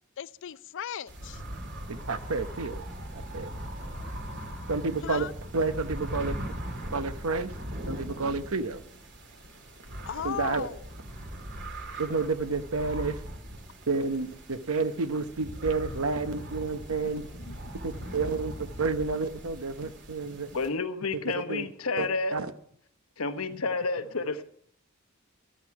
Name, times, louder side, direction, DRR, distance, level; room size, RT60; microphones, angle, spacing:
voice 1, 0.2-1.4 4.3-4.4 5.0-5.3 9.3-10.9 17.0-18.0 19.8-19.9 20.2-20.4 23.5-23.7, left 8 dB, 60° left, 0.5 m, -39 dB
sound 1, 1.1-20.7, equal, 60° right, 2.4 m, -40 dB
voice 2, 1.9-2.9 3.1-3.5 4.7-5.3 5.5-6.4 6.9-7.5 7.9-8.8 10.2-10.7 12.0-13.2 13.9-17.2 17.8-20.5 21.4-21.7 22.0-22.5, right 4 dB, 80° right, 1.0 m, -30 dB
voice 3, 20.5-22.4 23.2-24.4, left 3 dB, 85° left, 1.1 m, -30 dB
14.0 x 12.5 x 4.8 m
head